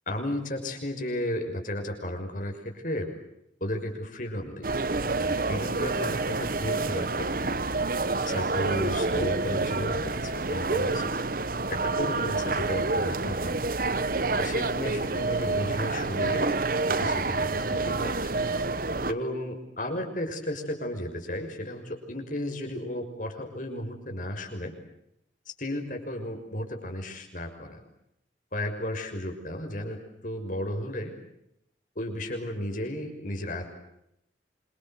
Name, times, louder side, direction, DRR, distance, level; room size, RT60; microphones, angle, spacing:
voice 1, 0.1-3.1 3.6-4.7 5.2-7.5 8.2-11.1 11.7-13.6 14.4-16.6 16.9-18.4 19.1-24.7 25.6-27.8 28.5-31.1 32.0-33.8, left 1 dB, 45° left, 3 dB, 6.1 m, -34 dB
sound 1, 4.6-19.1, right 3 dB, 50° right, 1.1 m, -28 dB
27.5 x 26.0 x 7.9 m, 0.79 s
head